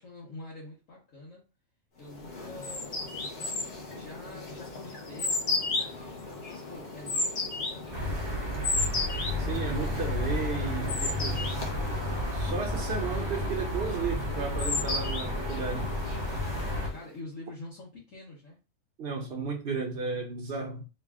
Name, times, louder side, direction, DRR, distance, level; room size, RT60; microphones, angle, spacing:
voice 1, 0.0-1.5 2.0-3.4 3.9-8.0 16.9-18.6, left 2 dB, 65° left, 1.5 m, -46 dB
sound 1, 2.1-17.0, left 3 dB, 40° left, 0.8 m, -35 dB
sound 2, 7.9-16.9, left 1 dB, 40° right, 0.4 m, -32 dB
voice 2, 9.4-11.5 12.3-16.0 19.0-20.9, right 4 dB, 55° right, 0.8 m, -34 dB
3.7 x 2.3 x 3.5 m
omnidirectional pair, 1.5 m